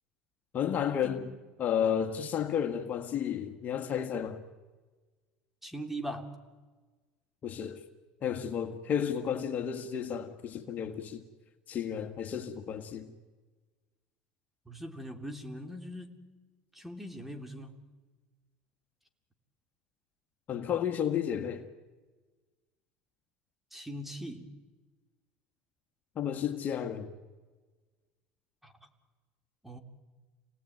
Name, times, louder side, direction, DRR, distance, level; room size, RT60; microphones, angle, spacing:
voice 1, 0.5-1.2 1.6-4.4 7.4-7.8 8.2-11.2 11.7-13.1 20.5-21.7 26.2-27.1, left 8 dB, 45° left, 1.8 m, -32 dB
voice 2, 5.6-6.3 14.6-16.3 16.7-17.8 23.7-24.5 28.6-28.9 29.6-29.8, equal, 5° right, 3.2 m, -41 dB
29.0 x 18.5 x 9.4 m
supercardioid pair, 95°, 4 cm